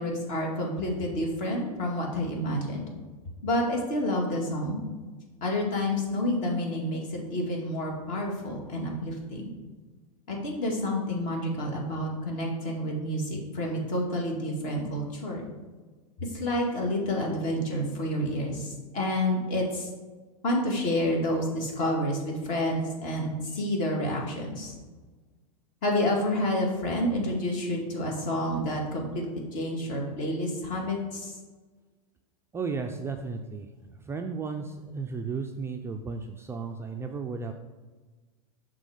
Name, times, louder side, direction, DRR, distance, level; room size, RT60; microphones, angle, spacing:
voice 1, 0.0-2.9 3.4-4.8 5.4-9.5 10.3-15.4 16.2-19.9 20.4-24.7 25.8-29.3 29.5-31.4, left 1 dB, 40° left, 0 dB, 2.0 m, -29 dB
voice 2, 32.5-33.7 34.0-37.5, right 4 dB, 15° right, 4 dB, 0.3 m, -34 dB
6.3 x 3.8 x 4.9 m, 1.3 s
hypercardioid pair, 105°, 19 cm